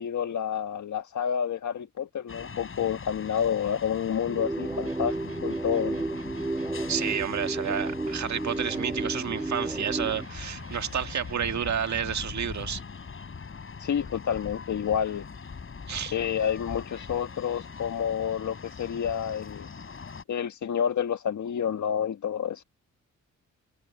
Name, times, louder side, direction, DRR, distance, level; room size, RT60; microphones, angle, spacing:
voice 1, 0.0-5.1 5.4-6.0 13.8-15.3 16.1-19.7 20.3-22.6, left 8 dB, 70° left, 1.6 m, -29 dB
sound 1, 2.3-20.2, left 5 dB, 40° left, 7.1 m, -41 dB
sound 2, 4.3-10.3, right 2 dB, 10° right, 0.4 m, -32 dB
sound 3, 4.8-11.8, right 5 dB, 50° right, 6.3 m, -50 dB
voice 2, 6.9-12.8 15.9-16.1, right 8 dB, 65° right, 1.8 m, -30 dB
cardioid pair, 110°, 31 cm